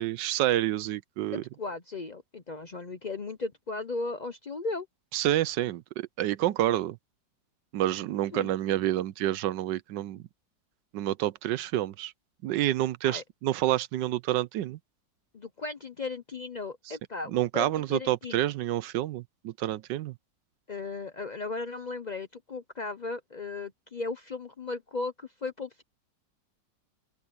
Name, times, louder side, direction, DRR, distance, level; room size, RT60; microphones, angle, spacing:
voice 1, 0.0-1.4 5.1-7.0 7.7-10.2 10.9-12.1 12.4-14.8 17.3-20.1, right 14 dB, 75° right, 1.2 m, -28 dB
voice 2, 1.3-4.9 8.3-8.5 13.0-13.2 15.3-18.5 20.7-25.8, left 3 dB, 85° left, 0.3 m, -36 dB
open air
omnidirectional pair, 2.0 m